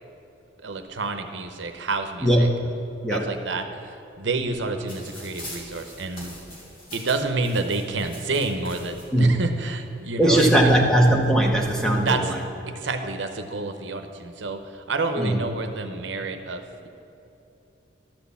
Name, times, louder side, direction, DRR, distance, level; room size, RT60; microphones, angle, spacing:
voice 1, 0.6-2.5 3.1-6.3 6.9-10.9 12.0-12.3 12.7-16.9, right 3 dB, 70° right, 7 dB, 0.7 m, -29 dB
voice 2, 2.2-2.7 3.0-3.2 9.1-9.5 10.2-12.4 15.2-15.4, right 1 dB, 5° left, 0 dB, 0.8 m, -19 dB
sound 1, 4.9-9.0 9.9-10.0 10.3-11.2 12.0-12.3, left 1 dB, 45° left, 2.3 m, -43 dB
12.0 x 4.4 x 7.0 m, 2.8 s
head